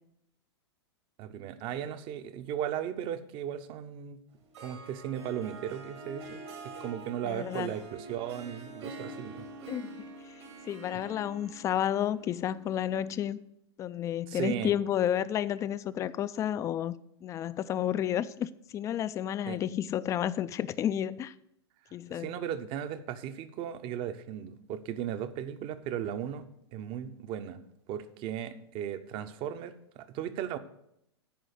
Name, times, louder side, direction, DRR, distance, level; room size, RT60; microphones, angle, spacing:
voice 1, 1.2-4.2 4.6-9.5 10.9-11.0 14.3-14.7 19.5-19.6 22.1-26.4 26.7-27.6 27.9-30.6, right 10 dB, 35° right, 0.8 m, -36 dB
Harp, 4.3-13.3, right 2 dB, 70° right, 2.6 m, -46 dB
voice 2, 7.2-7.7 9.7-10.1 10.4-13.4 13.8-17.0 17.2-21.3 21.9-22.4, left 10 dB, 20° left, 0.4 m, -31 dB
10.5 x 4.8 x 7.8 m
hypercardioid pair, 105°, 14 cm